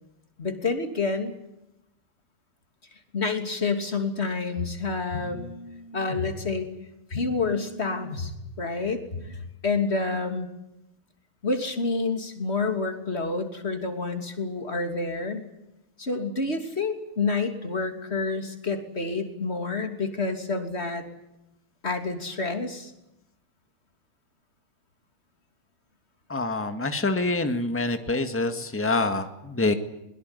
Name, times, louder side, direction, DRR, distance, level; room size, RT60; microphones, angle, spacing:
voice 1, 0.4-1.3 3.1-6.7 7.1-8.3 8.6-10.5 11.4-15.5 16.0-21.0 21.8-22.9, left 3 dB, 30° left, 6 dB, 3.2 m, -28 dB
voice 2, 26.3-29.7, left 2 dB, 5° left, 7 dB, 1.7 m, -26 dB
22.5 x 21.5 x 9.9 m, 0.88 s
omnidirectional pair, 2.4 m